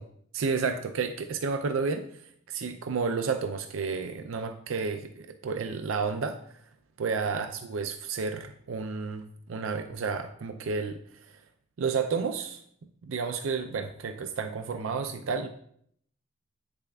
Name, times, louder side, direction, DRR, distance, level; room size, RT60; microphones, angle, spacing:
voice 1, 0.3-2.1 2.5-6.6 7.0-11.3 11.8-12.6 13.0-15.5, right 5 dB, 65° right, 7 dB, 0.4 m, -31 dB
8.2 x 6.8 x 2.3 m, 0.67 s
head